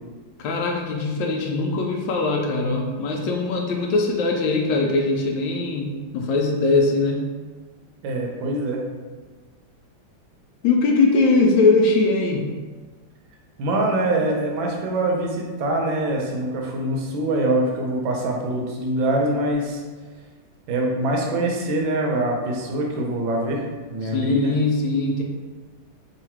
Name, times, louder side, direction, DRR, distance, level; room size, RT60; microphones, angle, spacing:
voice 1, 0.4-7.3 10.6-12.5 24.1-25.2, left 3 dB, 75° left, 1 dB, 1.2 m, -21 dB
voice 2, 8.0-8.8 13.6-19.8 20.7-23.6 23.9-24.6, right 1 dB, 75° right, 0 dB, 1.5 m, -24 dB
3.7 x 2.4 x 4.4 m, 1.4 s
omnidirectional pair, 2.2 m